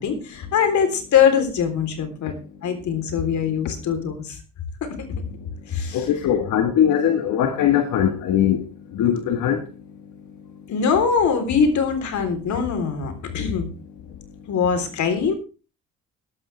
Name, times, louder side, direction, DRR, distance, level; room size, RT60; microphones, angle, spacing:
voice 1, 0.0-2.3 2.6-4.4 4.8-4.9 5.7-6.1 10.7-13.7 14.5-15.3, left 6 dB, 70° left, 3.7 m, -22 dB
voice 2, 5.9-8.6 8.9-9.6, left 9 dB, 90° left, 1.6 m, -20 dB
17.5 x 12.5 x 3.4 m
cardioid pair, 90°, 30 cm